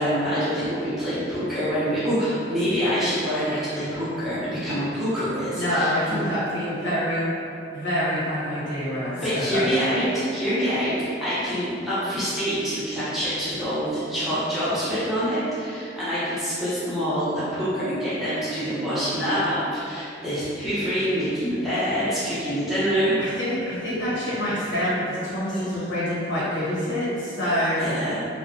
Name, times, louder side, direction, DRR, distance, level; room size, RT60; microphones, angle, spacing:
voice 1, 0.0-6.2 9.2-23.2 27.8-28.2, equal, ahead, -14 dB, 0.7 m, -26 dB
voice 2, 5.5-7.3 7.7-9.6 23.2-27.9, equal, 85° left, -10 dB, 1.0 m, -26 dB
2.7 x 2.1 x 2.5 m, 2.6 s
head